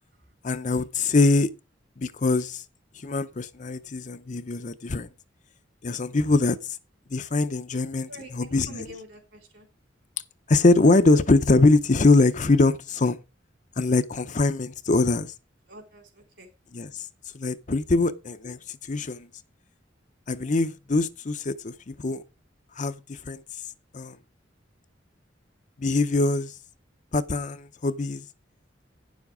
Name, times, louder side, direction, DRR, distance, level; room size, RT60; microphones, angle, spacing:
voice 1, 0.4-1.5 2.0-2.6 3.0-5.1 5.8-6.8 7.1-8.9 10.5-13.2 13.8-15.3 16.7-17.0 17.3-19.3 20.3-22.2 22.8-23.4 23.9-24.2 25.8-26.5 27.1-28.2, left 3 dB, 40° left, 0.6 m, -23 dB
voice 2, 8.7-9.7 15.7-16.5 17.9-18.0, equal, 65° right, 3.9 m, -45 dB
10.0 x 7.2 x 4.9 m
head